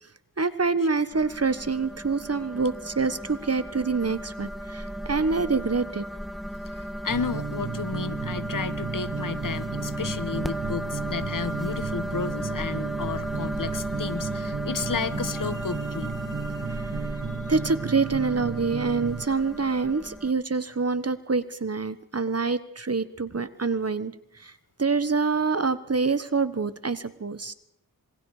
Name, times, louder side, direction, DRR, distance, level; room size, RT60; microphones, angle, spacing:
voice 1, 0.4-6.1 17.5-24.5 24.8-27.5, right 4 dB, 40° right, 13 dB, 1.4 m, -26 dB
sound 1, 1.1-20.3, equal, ahead, 1.4 m, -35 dB
voice 2, 6.6-16.1 17.3-17.4, left 5 dB, 60° left, 14 dB, 1.3 m, -32 dB
sound 2, 7.1-19.3, right 6 dB, 60° right, 0.9 m, -34 dB
27.0 x 22.0 x 5.0 m, 0.72 s
cardioid pair, 45°, 36 cm